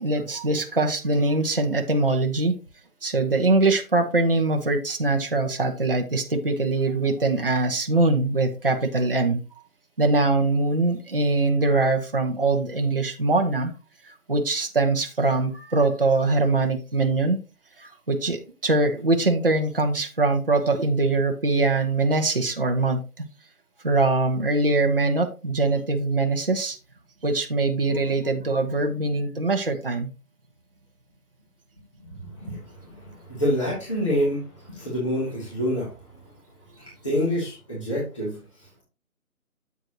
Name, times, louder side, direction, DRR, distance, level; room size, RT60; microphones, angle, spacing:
voice 1, 0.0-2.6 3.0-9.4 10.0-13.7 14.0-17.4 17.8-23.3 23.8-26.8 27.2-30.1, right 2 dB, 40° right, 3 dB, 0.8 m, -23 dB
voice 2, 32.0-36.0 36.8-38.7, equal, 20° left, -6 dB, 2.7 m, -27 dB
7.9 x 7.3 x 2.9 m, 0.31 s
hypercardioid pair, 180°, 45 cm